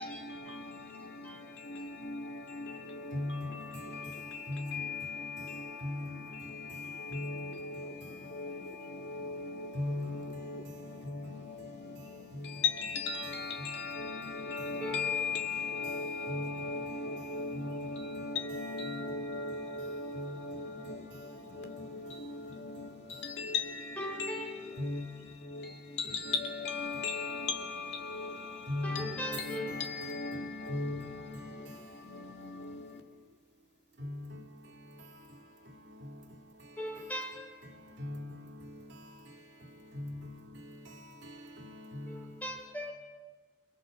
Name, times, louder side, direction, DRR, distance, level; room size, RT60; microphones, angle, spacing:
voice 1, 0.0-33.0, left 4 dB, 65° left, 2.2 m, -39 dB
voice 2, 3.1-3.9 4.5-5.0 5.8-6.3 7.1-7.5 9.7-10.5 11.0-11.4 12.3-12.5 16.3-16.7 17.5-17.9 20.1-20.3 24.8-25.2 26.1-26.2 28.7-29.7 30.3-31.4 34.0-34.4 38.0-38.5 39.9-40.3 41.6-42.2, left 1 dB, 75° right, 2.5 m, -39 dB
voice 3, 14.8-15.1 24.0-24.6 28.8-29.7 36.8-37.5 42.1-42.9, equal, 10° left, 4.4 m, -39 dB
30.0 x 27.5 x 5.3 m
head